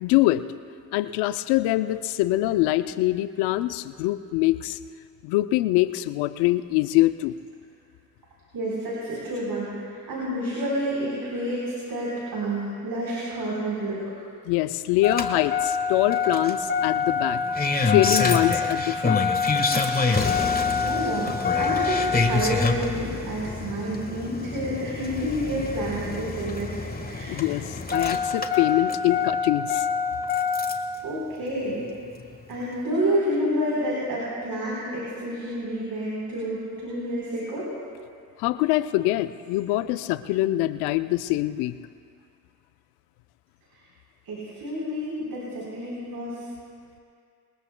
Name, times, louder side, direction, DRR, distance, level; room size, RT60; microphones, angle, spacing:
voice 1, 0.0-0.4 0.9-4.8 5.2-7.3 14.5-17.4 17.8-19.3 27.3-29.9 38.4-41.8, left 16 dB, 90° left, 13 dB, 0.5 m, -24 dB
voice 2, 8.5-14.0 20.3-26.8 27.0-27.4 31.0-31.8 32.5-37.7 44.2-46.4, right 1 dB, 65° right, -6 dB, 3.9 m, -29 dB
Engine starting, 15.0-31.0 32.2-32.3, left 4 dB, 25° left, 1.5 m, -26 dB
22.0 x 20.0 x 2.2 m, 2.3 s
hypercardioid pair, 50°, 38 cm